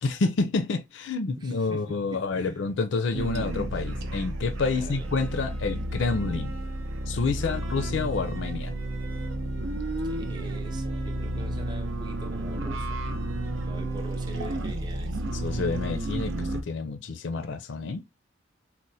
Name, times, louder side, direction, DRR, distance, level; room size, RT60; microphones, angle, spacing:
voice 1, 0.0-6.5 7.1-8.7 15.3-18.0, left 4 dB, 65° left, 0.4 m, -28 dB
voice 2, 1.4-2.6 4.8-5.1 7.3-8.0 10.0-12.9 13.6-15.2, equal, 20° right, 0.5 m, -43 dB
sound 1, 3.1-16.6, right 1 dB, 75° right, 0.6 m, -31 dB
4.2 x 2.1 x 2.6 m
head